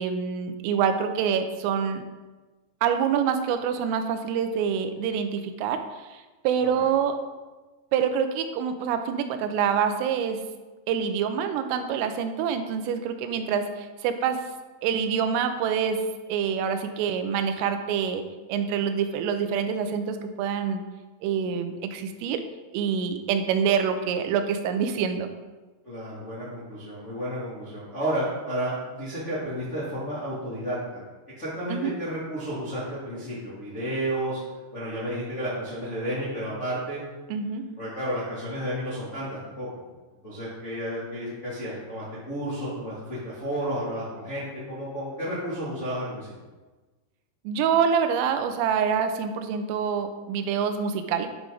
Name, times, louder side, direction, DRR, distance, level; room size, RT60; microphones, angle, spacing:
voice 1, 0.0-2.0 2.8-7.2 7.9-10.4 10.9-14.4 14.8-16.0 16.3-20.8 21.2-22.4 22.7-25.3 31.7-31.9 37.3-37.7 47.5-51.3, right 7 dB, 85° right, 7 dB, 3.3 m, -26 dB
voice 2, 25.8-31.0 31.4-34.4 34.7-37.0 37.8-39.7 40.2-46.3, right 1 dB, 45° left, -10 dB, 0.9 m, -32 dB
9.7 x 6.1 x 3.8 m, 1.2 s
omnidirectional pair, 5.7 m